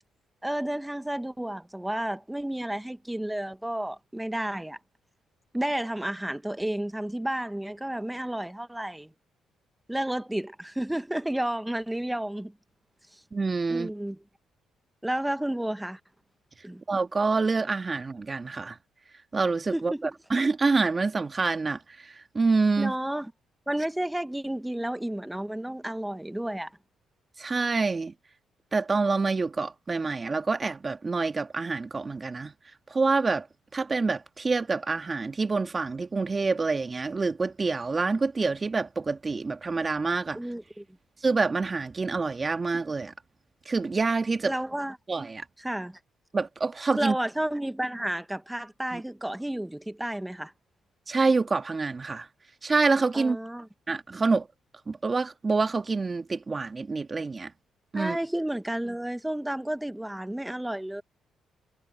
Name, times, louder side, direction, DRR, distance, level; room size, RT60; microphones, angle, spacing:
voice 1, 0.4-4.8 5.5-9.1 9.9-12.5 13.1-13.2 13.7-14.2 15.0-16.0 16.6-16.8 19.7-20.1 22.8-23.3 23.7-26.7 40.3-40.8 44.4-45.0 45.6-46.0 47.0-50.5 53.1-53.7 57.9-61.0, right 1 dB, 5° right, 1.1 m, -31 dB
voice 2, 13.3-13.9 16.9-18.8 19.3-22.9 27.4-28.1 28.7-32.5 32.9-33.5 33.7-40.4 41.2-43.1 43.7-44.6 45.1-45.5 46.3-47.2 48.9-49.0 51.1-52.3 52.6-53.4 53.9-54.5 54.9-57.5 57.9-58.2, right 4 dB, 30° right, 1.7 m, -27 dB
cardioid pair, 75°, 0 cm